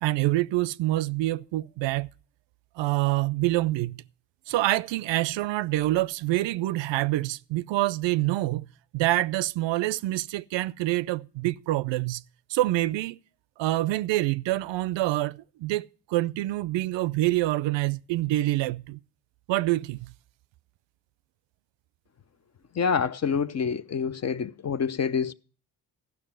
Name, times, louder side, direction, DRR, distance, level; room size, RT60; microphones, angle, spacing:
voice 1, 0.0-2.1 2.8-4.0 4.5-8.6 8.9-12.2 12.5-13.2 13.6-19.0 19.5-20.1, right 17 dB, 65° right, 0.5 m, -26 dB
voice 2, 22.8-25.3, left 6 dB, 35° left, 0.6 m, -27 dB
13.5 x 6.0 x 7.5 m
hypercardioid pair, 50°, 49 cm